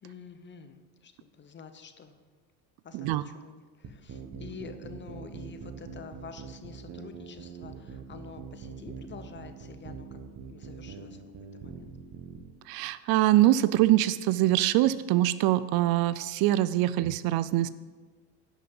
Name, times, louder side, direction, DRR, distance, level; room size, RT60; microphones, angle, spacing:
voice 1, 0.0-2.2 2.8-11.2 11.6-11.9, left 5 dB, 25° left, 9 dB, 0.8 m, -48 dB
sound 1, 3.8-12.5, right 6 dB, 40° right, 1.2 m, -43 dB
voice 2, 12.7-17.7, right 15 dB, 60° right, 16 dB, 0.5 m, -24 dB
11.0 x 6.0 x 5.4 m, 1.4 s
supercardioid pair, 110°, 42 cm